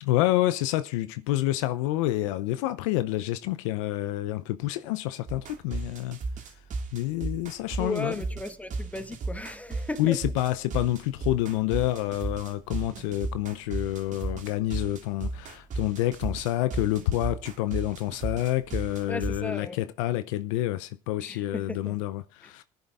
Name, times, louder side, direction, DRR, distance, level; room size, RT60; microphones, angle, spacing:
voice 1, 0.0-6.2 6.9-8.2 10.0-22.6, left 15 dB, 80° left, 0.6 m, -28 dB
sound 1, 5.3-19.4, right 3 dB, 50° right, 2.1 m, -34 dB
voice 2, 7.8-10.2 19.1-19.8 21.2-21.9, left 2 dB, 10° left, 1.3 m, -35 dB
20.5 x 10.5 x 2.5 m
hypercardioid pair, 65°, 16 cm